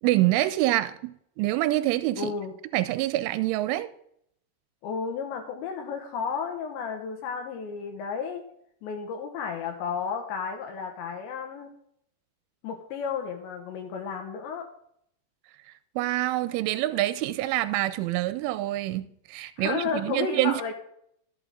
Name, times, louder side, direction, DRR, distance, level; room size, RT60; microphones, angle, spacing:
voice 1, 0.0-2.3 2.7-3.9 16.0-20.6, right 16 dB, 85° right, 3.1 m, -26 dB
voice 2, 2.2-2.5 4.8-8.4 8.8-11.7 12.6-14.6 19.6-20.7, left 6 dB, 75° left, 3.2 m, -32 dB
13.5 x 8.3 x 3.8 m
omnidirectional pair, 5.6 m